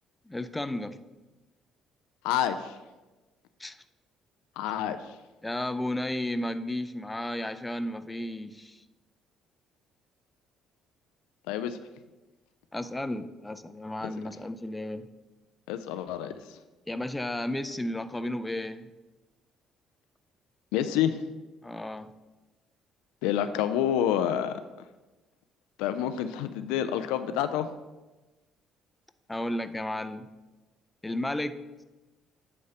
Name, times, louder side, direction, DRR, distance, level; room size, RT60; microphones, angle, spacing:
voice 1, 0.3-1.0 3.6-3.8 5.4-8.8 12.7-15.0 16.9-18.9 21.6-22.1 29.3-30.3 31.0-31.8, left 1 dB, 15° left, 11 dB, 0.5 m, -33 dB
voice 2, 2.2-2.8 4.6-5.1 11.5-11.8 15.7-16.6 20.7-21.2 23.2-24.6 25.8-27.7, left 10 dB, 70° left, 10 dB, 0.3 m, -28 dB
8.8 x 3.2 x 6.6 m, 1.1 s
figure-of-eight pair, 50°, 0 cm